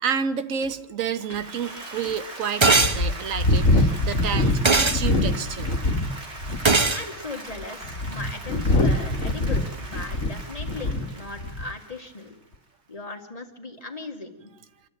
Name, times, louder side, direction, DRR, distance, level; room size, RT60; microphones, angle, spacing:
voice 1, 0.0-5.7 10.8-11.0, right 7 dB, 85° right, 11 dB, 1.4 m, -30 dB
sound 1, 0.6-0.7 1.3-1.4 2.0-2.1 2.8-6.1 6.4-6.9 7.6-11.1 11.4-11.7, left 2 dB, 75° left, 1.9 m, -23 dB
Applause, 1.2-12.5, right 2 dB, 55° right, 2.8 m, -41 dB
sound 2, 2.6-3.0 4.6-5.0 6.6-7.0, right 3 dB, 25° right, 0.8 m, -18 dB
voice 2, 6.9-12.3 12.9-14.5, left 3 dB, 30° left, 3 dB, 2.2 m, -38 dB
25.5 x 13.0 x 9.1 m, 1.0 s
omnidirectional pair, 1.3 m